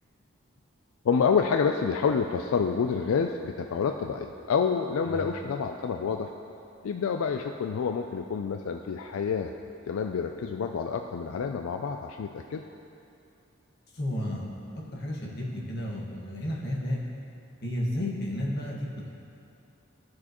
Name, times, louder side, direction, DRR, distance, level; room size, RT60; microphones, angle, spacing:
voice 1, 1.0-6.3 6.8-9.5 9.9-12.6, left 6 dB, 85° left, 5 dB, 0.4 m, -28 dB
voice 2, 13.9-14.5 14.7-17.0 17.6-19.1, left 1 dB, 50° left, -4 dB, 1.4 m, -32 dB
15.0 x 6.1 x 3.0 m, 2.6 s
head